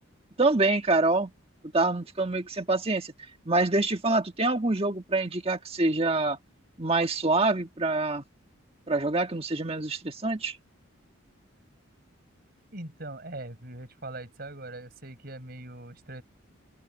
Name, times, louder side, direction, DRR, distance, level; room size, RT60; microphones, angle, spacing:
voice 1, 0.4-1.3 1.7-3.1 3.4-6.4 6.8-8.2 8.9-10.6, right 2 dB, 25° right, 1.6 m, -26 dB
voice 2, 12.7-16.2, right 2 dB, 45° right, 4.7 m, -41 dB
open air
head